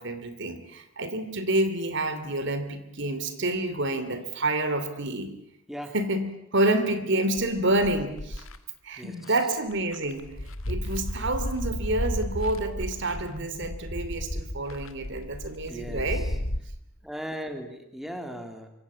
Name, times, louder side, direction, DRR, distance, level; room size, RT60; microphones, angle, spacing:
voice 1, 0.0-5.3 5.9-8.4 8.8-10.3 10.7-16.3, right 1 dB, 55° right, 10 dB, 2.8 m, -28 dB
sound 1, 7.4-8.6 9.3-9.4 9.7-16.6, left 1 dB, 70° left, 2.0 m, -33 dB
voice 2, 8.9-9.4 15.7-16.4 17.0-18.7, equal, ahead, 5 dB, 2.8 m, -38 dB
25.0 x 25.0 x 8.4 m, 0.80 s
head